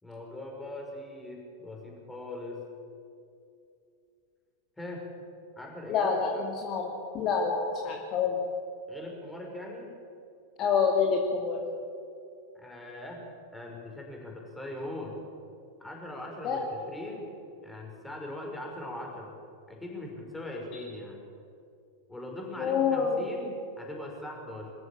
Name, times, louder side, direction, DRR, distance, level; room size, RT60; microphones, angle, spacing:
voice 1, 0.0-2.6 4.8-5.1 5.6-6.5 8.9-10.0 12.6-13.3 13.5-15.2 15.8-17.3 17.6-19.3 19.7-21.2 22.1-24.7, left 1 dB, 5° left, 0 dB, 5.5 m, -40 dB
voice 2, 5.9-6.3 6.6-6.9 7.1-8.4 10.6-11.6 16.4-16.6 22.6-23.2, left 6 dB, 35° left, 1 dB, 2.4 m, -27 dB
24.0 x 14.0 x 8.7 m, 2.5 s
figure-of-eight pair, 90°, 0 cm